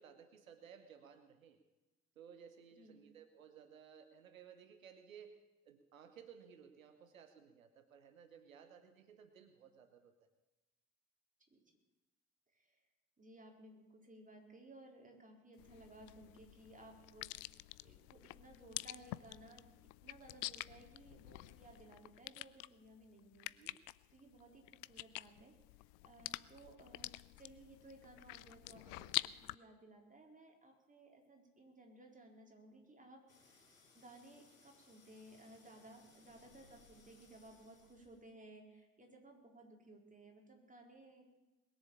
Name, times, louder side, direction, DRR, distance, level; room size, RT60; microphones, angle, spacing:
voice 1, 0.0-1.6 2.2-10.1 23.4-23.8 28.9-29.1, right 7 dB, 85° right, 9 dB, 0.8 m, -58 dB
voice 2, 12.5-12.8 13.2-17.3 17.8-25.6 26.0-41.3, right 1 dB, 20° right, 1 dB, 4.2 m, -59 dB
sound 1, 15.6-29.5, left 21 dB, 65° left, 0.5 m, -47 dB
sound 2, 33.3-38.3, left 4 dB, 90° left, 1.5 m, -67 dB
21.0 x 7.2 x 8.4 m, 1.1 s
figure-of-eight pair, 45°, 39 cm